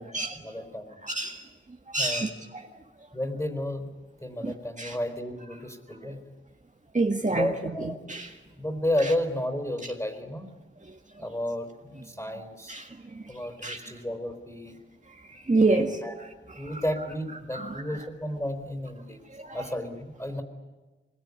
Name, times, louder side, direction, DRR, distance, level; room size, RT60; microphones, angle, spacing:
voice 1, 0.0-1.0 2.0-2.5 3.1-3.9 4.2-6.2 7.3-8.0 8.6-10.5 11.2-12.8 13.3-14.8 15.7-16.1 16.6-19.2 19.5-20.4, left 1 dB, 15° left, 7 dB, 4.4 m, -32 dB
voice 2, 1.1-1.4 1.9-2.3 4.4-4.5 4.8-4.9 6.9-7.5 7.8-8.3 12.7-13.2 13.6-13.8 15.5-16.0 17.5-17.7 19.4-19.6, right 3 dB, 35° right, 3 dB, 1.7 m, -26 dB
25.0 x 21.5 x 9.8 m, 1.2 s
wide cardioid pair, 80°, 21 cm